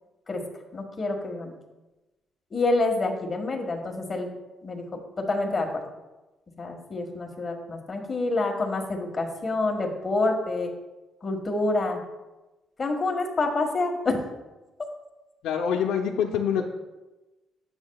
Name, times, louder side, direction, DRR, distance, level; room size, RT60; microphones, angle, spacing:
voice 1, 0.7-1.6 2.5-4.3 4.6-5.8 6.6-10.7 11.2-12.0 12.8-14.2, left 2 dB, 30° left, 1 dB, 1.6 m, -27 dB
voice 2, 15.4-16.7, left 7 dB, 85° left, 1 dB, 0.6 m, -25 dB
9.6 x 7.6 x 2.3 m, 1.1 s
cardioid pair, 90°, 0 cm